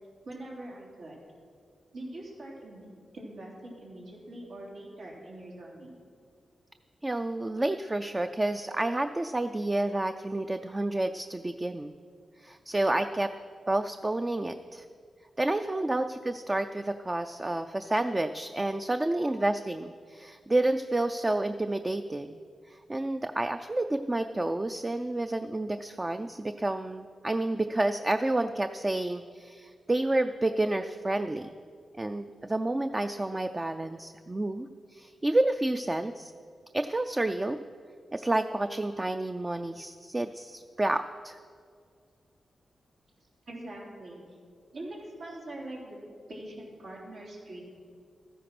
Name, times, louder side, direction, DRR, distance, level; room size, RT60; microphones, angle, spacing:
voice 1, 0.2-1.2 1.9-2.9 3.1-5.9 11.4-11.5 15.7-15.8 19.1-19.3 43.5-44.2 44.7-46.0 46.3-47.6, right 1 dB, 80° right, -4 dB, 3.4 m, -43 dB
voice 2, 7.0-11.9 12.4-13.3 13.7-14.8 15.4-22.4 22.7-31.5 32.0-36.3 36.7-37.6 38.1-41.4, right 2 dB, 20° right, 8 dB, 0.4 m, -30 dB
13.0 x 10.0 x 6.0 m, 2.1 s
wide cardioid pair, 95°, 0 cm